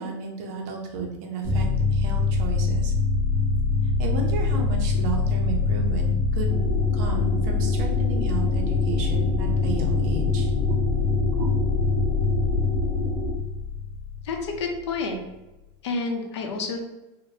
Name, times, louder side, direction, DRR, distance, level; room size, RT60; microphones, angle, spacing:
voice 1, 0.0-2.9 4.0-6.6 6.9-10.5 11.3-11.5, right 4 dB, 35° right, 1 dB, 0.5 m, -33 dB
sound 1, 1.4-14.9, left 4 dB, 15° left, 1.2 m, -24 dB
sound 2, 6.5-13.3, right 1 dB, 80° right, 0.6 m, -31 dB
voice 2, 14.2-15.2 15.8-16.8, left 3 dB, 75° left, 3 dB, 0.6 m, -29 dB
3.1 x 2.1 x 2.7 m, 1.0 s
supercardioid pair, 180°, 14 cm